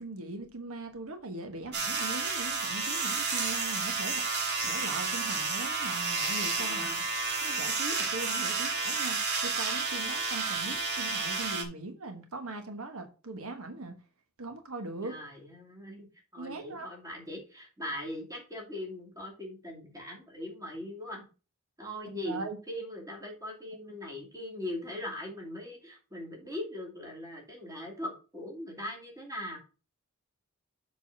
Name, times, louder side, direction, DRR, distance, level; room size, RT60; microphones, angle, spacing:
voice 1, 0.0-4.2 4.6-6.9 7.4-13.9 14.4-15.2 16.4-16.9 22.2-22.6, right 2 dB, 90° right, 1.3 m, -40 dB
sound 1, 1.7-11.6, right 4 dB, 55° right, 1.9 m, -31 dB
voice 2, 6.6-7.1 10.4-10.7 15.0-16.1 16.3-21.2 21.8-29.6, left 1 dB, 15° right, 2.6 m, -40 dB
7.2 x 4.0 x 5.9 m
head